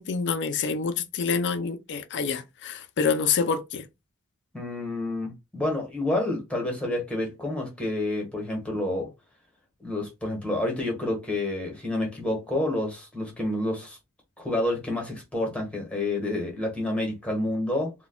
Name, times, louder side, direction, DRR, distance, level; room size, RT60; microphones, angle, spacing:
voice 1, 0.0-3.9, left 5 dB, 55° left, 0.5 m, -27 dB
voice 2, 4.5-9.1 9.8-14.0 14.4-17.9, left 1 dB, 5° left, 1.2 m, -29 dB
4.0 x 2.2 x 2.2 m
head